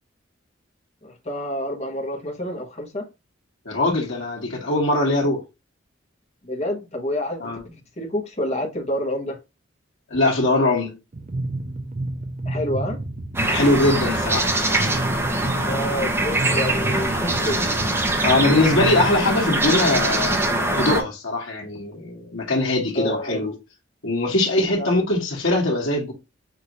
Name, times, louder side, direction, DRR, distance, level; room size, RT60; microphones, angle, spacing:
voice 1, 1.0-3.1 6.4-7.5 8.0-9.4 12.4-13.0 15.6-17.6 22.9-23.5 24.8-25.1, left 1 dB, 35° left, 1.1 m, -28 dB
voice 2, 3.6-5.4 7.4-7.6 10.1-10.9 13.5-14.5 17.5-17.6 18.2-20.4 20.8-23.5 24.0-26.1, left 2 dB, 90° left, 1.5 m, -21 dB
sound 1, 11.1-19.1, right 2 dB, 40° right, 0.5 m, -30 dB
sound 2, 13.3-21.0, right 1 dB, 10° right, 0.9 m, -23 dB
5.9 x 2.7 x 3.0 m
head